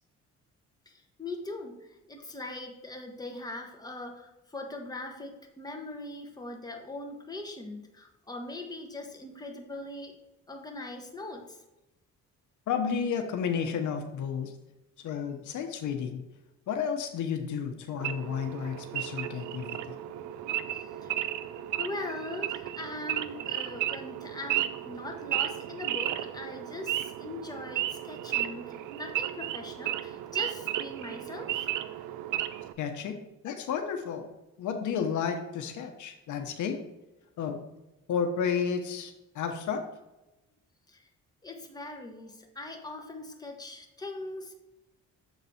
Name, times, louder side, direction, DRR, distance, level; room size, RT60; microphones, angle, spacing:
voice 1, 0.8-10.2 10.5-11.6 20.7-21.4 21.8-31.7 40.9-41.1 41.4-44.5, left 2 dB, 15° left, 2 dB, 1.5 m, -41 dB
voice 2, 12.7-14.6 15.0-16.2 16.7-19.9 32.8-33.2 33.4-34.3 34.6-36.8 37.4-37.6 38.1-39.8, left 7 dB, 75° left, 5 dB, 1.0 m, -32 dB
Wild animals / Idling, 18.0-32.7, right 12 dB, 90° right, 0.5 m, -34 dB
7.3 x 4.0 x 5.7 m, 0.97 s
cardioid pair, 90°, 30 cm